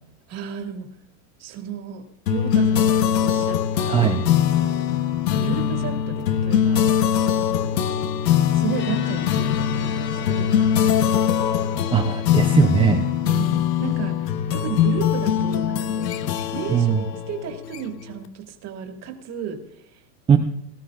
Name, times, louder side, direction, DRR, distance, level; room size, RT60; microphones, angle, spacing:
voice 1, 0.3-0.9 1.4-4.0 4.6-4.9 5.3-7.0 7.6-7.9 8.3-11.2 13.2-16.2 16.5-20.0, right 8 dB, 30° right, 4 dB, 2.2 m, -34 dB
sound 1, 2.3-18.1, left 9 dB, 80° left, 1.2 m, -22 dB
voice 2, 3.9-4.2 11.9-13.0 16.7-17.0 20.3-20.4, right 7 dB, 10° right, 4 dB, 0.6 m, -19 dB
sound 2, 8.7-13.5, left 10 dB, 25° left, 0.9 m, -38 dB
19.0 x 13.0 x 2.5 m, 0.82 s
supercardioid pair, 130°, 48 cm